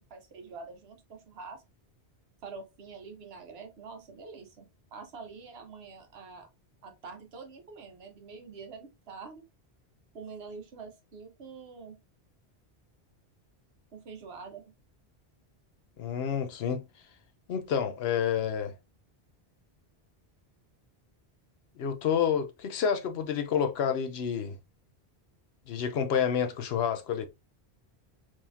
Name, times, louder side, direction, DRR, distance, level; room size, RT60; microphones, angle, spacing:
voice 1, 0.0-1.6 2.4-6.5 6.8-9.4 10.1-12.0 13.9-14.6, right 4 dB, 70° right, 1.1 m, -46 dB
voice 2, 16.0-16.8 17.5-18.7 21.8-24.6 25.7-27.3, left 8 dB, 75° left, 0.8 m, -29 dB
3.7 x 3.1 x 2.5 m
omnidirectional pair, 1.1 m